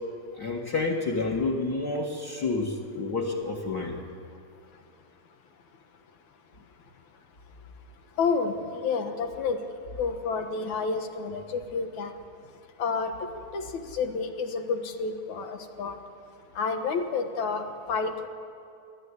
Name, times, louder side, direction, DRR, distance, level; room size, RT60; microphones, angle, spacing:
voice 1, 0.4-4.0, left 3 dB, 40° left, 0 dB, 1.8 m, -29 dB
voice 2, 8.2-9.6 10.0-12.1 12.8-16.0 16.6-18.3, left 4 dB, 75° left, 5 dB, 2.7 m, -30 dB
29.5 x 12.0 x 9.7 m, 2.5 s
omnidirectional pair, 3.4 m